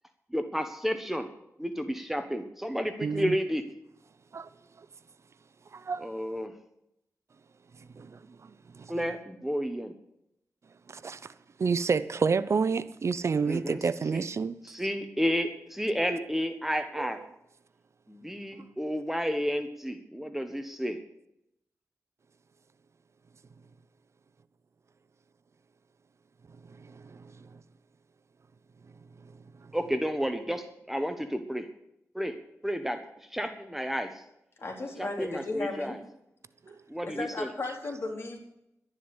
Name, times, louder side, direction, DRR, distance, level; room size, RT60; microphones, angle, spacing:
voice 1, 0.3-1.3 1.6-3.6 6.0-6.5 8.9-9.9 13.5-13.8 14.1-14.2 14.7-17.2 18.1-21.0 29.7-31.7 32.1-32.4 32.6-33.0 33.3-34.2 35.0-36.0 36.9-37.5, equal, 5° right, 1.3 m, -31 dB
voice 2, 3.0-3.4 4.3-4.5 4.7-4.9 5.7-6.2 7.7-9.0 10.6-14.6 17.0-17.2 18.6-18.7 26.5-27.6 28.8-29.8 36.6-36.8, right 5 dB, 55° right, 0.6 m, -31 dB
voice 3, 34.6-36.0 37.0-38.4, left 2 dB, 45° left, 4.0 m, -35 dB
12.0 x 11.0 x 8.2 m
wide cardioid pair, 100°, 6 cm